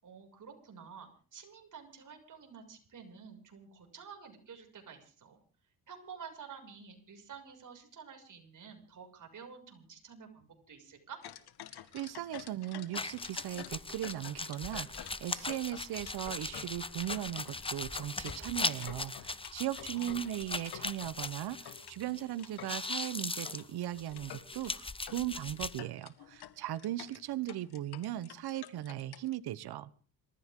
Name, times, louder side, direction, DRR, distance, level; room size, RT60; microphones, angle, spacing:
voice 1, 0.0-5.4 5.9-11.2 19.9-20.3, right 6 dB, 50° right, 3 dB, 6.4 m, -50 dB
sound 1, 11.2-21.3 21.7-23.7 24.1-24.7 25.1-25.2 25.5-29.3, left 11 dB, 75° left, 1.8 m, -49 dB
voice 2, 11.9-29.9, right 13 dB, 70° right, 16 dB, 1.1 m, -38 dB
sound 2, 13.0-22.2 22.5-25.8, left 3 dB, 15° left, 0.9 m, -39 dB
27.0 x 14.0 x 3.8 m, 0.40 s
cardioid pair, 80°, 39 cm